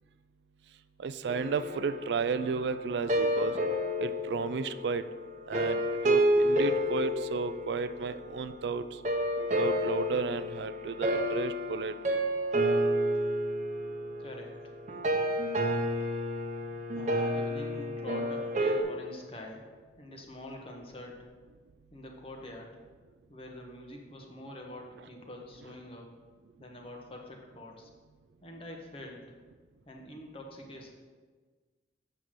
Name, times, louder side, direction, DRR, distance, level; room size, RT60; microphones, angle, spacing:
voice 1, 1.0-3.6 4.0-5.0 5.5-9.0 9.6-12.2, right 5 dB, 75° right, 12 dB, 0.4 m, -33 dB
sound 1, 1.3-8.5 9.0-18.8, equal, 45° right, 0.8 m, -30 dB
voice 2, 13.8-14.7 16.2-16.3 16.9-21.2 21.9-22.8 23.3-26.2 26.6-27.9 28.4-29.3 29.8-30.9, left 1 dB, 30° left, 1 dB, 1.2 m, -46 dB
7.9 x 5.9 x 4.8 m, 1.4 s
head